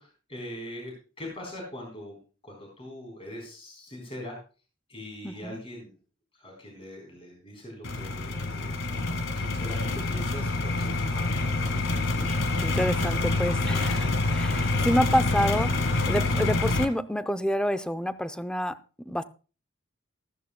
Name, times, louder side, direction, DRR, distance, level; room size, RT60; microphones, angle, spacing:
voice 1, 0.0-2.2 2.4-4.4 4.9-5.9 6.3-8.8 9.3-11.3, left 1 dB, 30° left, -1 dB, 3.9 m, -41 dB
voice 2, 5.2-5.6 12.2-18.8 19.1-19.2, equal, 5° left, 11 dB, 0.5 m, -28 dB
sound 1, 7.8-16.9, left 2 dB, 65° left, 1.6 m, -27 dB
14.5 x 14.0 x 2.2 m, 0.35 s
head